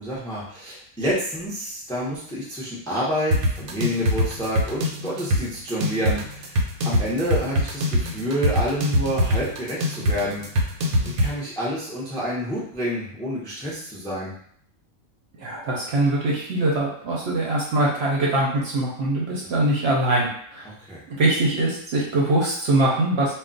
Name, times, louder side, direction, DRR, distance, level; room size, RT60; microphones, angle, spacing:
voice 1, 0.0-6.6 6.8-10.5 11.0-14.3 20.6-21.0, equal, 5° left, -6 dB, 0.4 m, -28 dB
sound 1, 3.3-11.3, equal, 85° right, 1.0 m, -23 dB
voice 2, 15.4-20.6 21.1-23.3, right 1 dB, 60° right, -3 dB, 0.8 m, -22 dB
2.3 x 2.2 x 3.8 m, 0.62 s
omnidirectional pair, 1.4 m